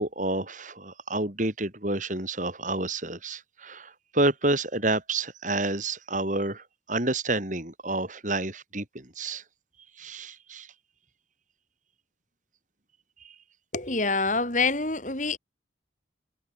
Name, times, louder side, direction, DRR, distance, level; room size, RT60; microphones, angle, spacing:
voice 1, 0.0-9.4 10.0-10.7 13.2-13.3, right 2 dB, 45° right, 5.2 m, -29 dB
voice 2, 13.7-15.4, left 3 dB, 45° left, 6.7 m, -26 dB
head